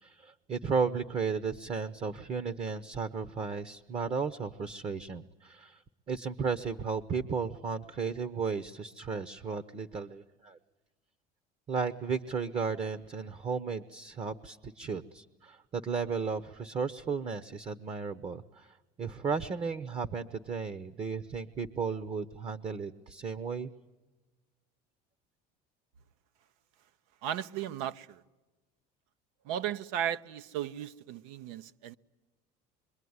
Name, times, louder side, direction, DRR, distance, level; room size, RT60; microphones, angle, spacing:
voice 1, 0.0-5.8 6.1-10.6 11.7-23.7, right 5 dB, 30° right, 0.9 m, -34 dB
voice 2, 27.2-28.2 29.5-31.9, right 10 dB, 90° right, 0.9 m, -35 dB
26.5 x 23.5 x 9.6 m
cardioid pair, 140°, 18 cm